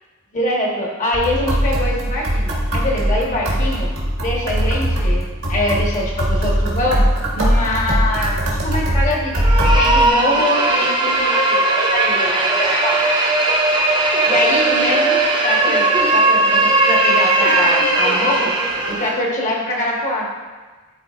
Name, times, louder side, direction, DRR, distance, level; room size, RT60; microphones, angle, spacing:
voice 1, 0.3-3.9 4.2-7.0 7.3-8.4 8.6-13.0 14.3-18.5 18.9-20.3, left 1 dB, 35° left, -3 dB, 1.2 m, -23 dB
sound 1, 1.1-10.1, equal, 70° right, 1.7 m, -20 dB
sound 2, 9.3-19.2, right 2 dB, 20° right, 0.5 m, -17 dB
11.5 x 4.5 x 2.4 m, 1.3 s
head